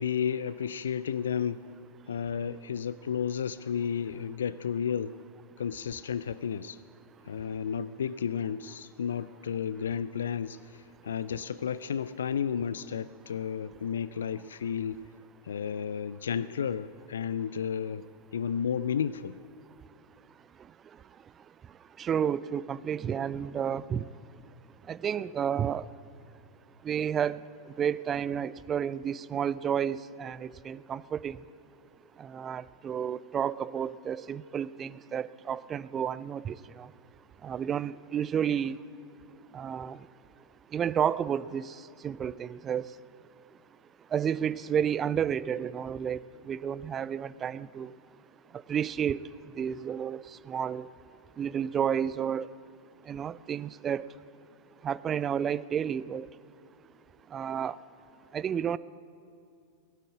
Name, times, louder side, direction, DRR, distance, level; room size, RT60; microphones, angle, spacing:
voice 1, 0.0-1.6 2.1-5.2 5.6-6.8 7.2-15.0 15.4-18.1 18.3-19.4, left 7 dB, 65° left, 16 dB, 0.3 m, -32 dB
voice 2, 22.0-24.0 24.9-25.8 26.8-27.4 27.8-31.4 32.2-36.9 37.4-38.8 39.5-40.0 40.7-41.7 42.0-42.8 44.1-46.2 46.5-47.9 48.7-49.2 49.6-50.9 51.4-52.5 53.1-54.1 54.8-56.3 57.3-57.7 58.3-58.8, right 8 dB, 25° right, 19 dB, 0.4 m, -31 dB
18.0 x 9.1 x 8.3 m, 2.5 s
figure-of-eight pair, 90°, 0 cm